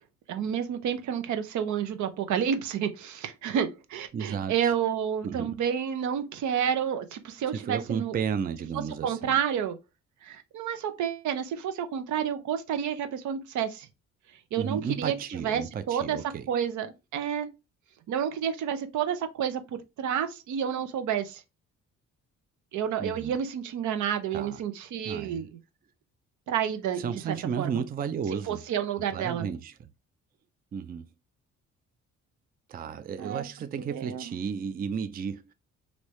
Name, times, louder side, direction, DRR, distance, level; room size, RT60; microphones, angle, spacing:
voice 1, 0.3-8.2 9.0-9.8 10.2-13.9 14.5-16.2 16.5-17.5 18.1-21.4 22.7-25.5 26.5-27.7 28.5-29.5 33.2-33.4 33.8-34.3, right 8 dB, 75° right, 0.6 m, -30 dB
voice 2, 4.1-4.7 5.2-5.6 7.5-9.4 14.6-16.5 23.0-23.3 24.3-24.6 25.0-25.5 27.0-28.6 29.1-29.9 30.7-31.1 32.7-35.5, right 7 dB, 30° right, 0.4 m, -33 dB
3.2 x 2.7 x 3.1 m
cardioid pair, 90°, 30 cm